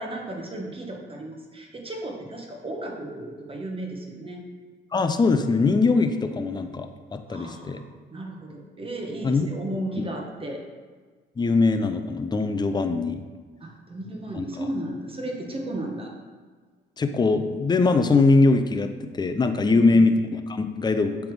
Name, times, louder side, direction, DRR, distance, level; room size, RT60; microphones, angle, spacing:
voice 1, 0.0-4.4 7.3-7.8 8.1-10.6 13.6-16.1 19.6-20.1, right 1 dB, 30° right, 0 dB, 1.3 m, -34 dB
voice 2, 4.9-7.8 9.2-9.5 10.0-10.1 11.4-13.2 14.3-14.7 17.0-21.2, left 3 dB, 20° left, 8 dB, 0.5 m, -22 dB
7.5 x 3.5 x 4.7 m, 1.5 s
cardioid pair, 90°, 20 cm